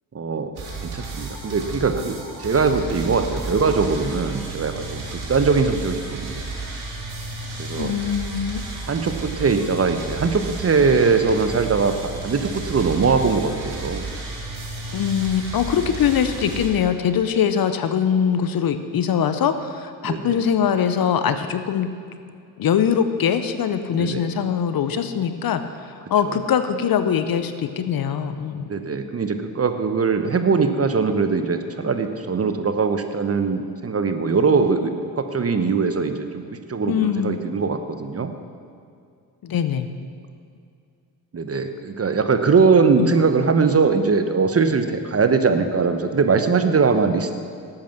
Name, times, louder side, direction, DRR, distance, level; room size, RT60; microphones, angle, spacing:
voice 1, 0.1-0.5 0.9-6.5 7.6-7.9 8.9-14.0 20.0-20.4 23.9-24.3 26.2-26.4 28.7-38.3 41.3-47.4, right 4 dB, 30° right, 8 dB, 1.0 m, -21 dB
sound 1, 0.6-16.7, right 3 dB, 50° right, 3.2 m, -32 dB
voice 2, 7.7-8.6 14.9-21.9 22.6-28.7 36.9-37.4 39.4-39.9 43.0-43.1, left 8 dB, 45° left, 10 dB, 0.8 m, -22 dB
11.5 x 8.7 x 6.0 m, 2.4 s
hypercardioid pair, 50°, 50 cm